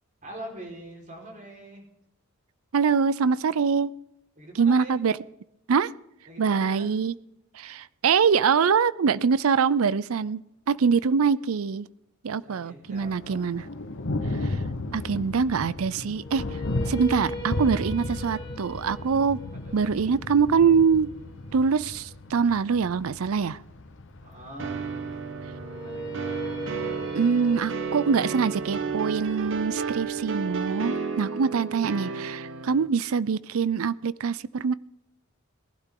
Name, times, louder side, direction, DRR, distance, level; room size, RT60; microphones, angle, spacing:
voice 1, 0.2-1.8 4.4-4.9 6.3-6.9 12.4-13.5 19.5-19.9 24.2-24.8 25.7-26.5, right 1 dB, 40° right, 0 dB, 4.7 m, -43 dB
voice 2, 2.7-3.9 4.6-5.2 5.7-5.9 6.4-7.1 7.5-10.4 10.7-11.9 12.2-13.7 14.4-14.6 14.9-16.6 16.9-19.4 19.7-21.1 21.5-23.6 27.1-34.7, right 6 dB, 85° right, 18 dB, 0.5 m, -24 dB
Thunder, 12.8-30.8, left 2 dB, 65° left, 1.2 m, -36 dB
sound 1, 16.2-22.3 25.5-31.6, right 2 dB, 20° left, 3.4 m, -40 dB
sound 2, 24.6-32.9, right 5 dB, 65° right, 1.1 m, -32 dB
19.0 x 12.0 x 3.8 m, 0.81 s
head